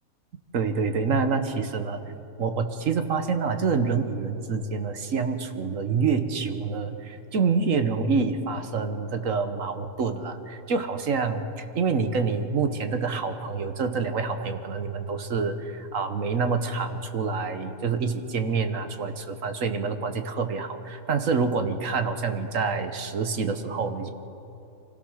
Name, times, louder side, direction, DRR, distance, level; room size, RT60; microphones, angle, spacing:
voice 1, 0.5-2.0 2.4-24.1, right 5 dB, 55° right, 8 dB, 1.3 m, -27 dB
24.5 x 16.5 x 6.4 m, 2.8 s
omnidirectional pair, 1.7 m